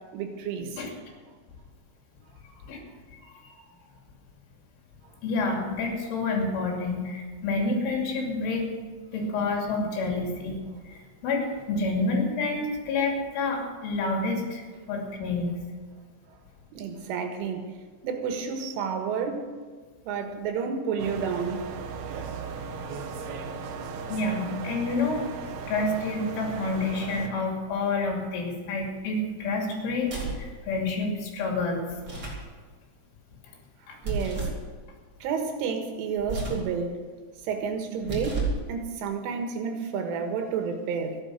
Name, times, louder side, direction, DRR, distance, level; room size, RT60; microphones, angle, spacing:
voice 1, 0.1-0.8 16.7-17.7 18.0-19.4 20.1-21.7 34.0-34.5 35.2-37.0 37.5-41.2, right 6 dB, 85° right, 4 dB, 4.0 m, -30 dB
voice 2, 5.2-8.7 9.1-10.6 11.2-14.6 14.9-15.5 24.1-25.2 25.7-31.8 33.9-34.0, left 3 dB, 80° left, 0 dB, 5.1 m, -28 dB
sound 1, 21.0-27.3, right 5 dB, 70° right, 2.5 m, -37 dB
sound 2, 30.0-30.5 31.9-32.5 34.0-34.6 36.2-36.7 37.9-38.7, right 3 dB, 25° right, 3.1 m, -31 dB
14.0 x 11.0 x 6.4 m, 1.5 s
omnidirectional pair, 5.5 m